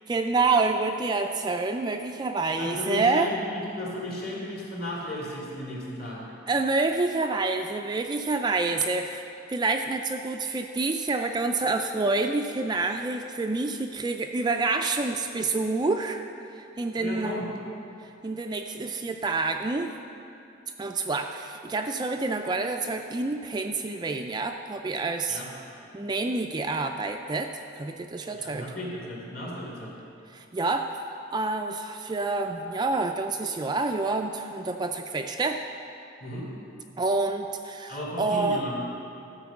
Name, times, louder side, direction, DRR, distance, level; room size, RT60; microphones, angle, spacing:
voice 1, 0.1-3.3 6.5-9.2 9.5-16.2 16.8-17.3 18.2-19.9 20.8-25.4 25.9-28.7 30.3-30.9 31.3-35.6 37.0-38.7, right 3 dB, 20° right, 5 dB, 0.3 m, -27 dB
voice 2, 2.6-6.3 17.0-17.5 25.3-25.5 28.3-29.9 36.2-36.5 37.9-38.8, left 1 dB, 50° left, -4 dB, 2.6 m, -34 dB
13.0 x 5.2 x 7.1 m, 2.8 s
head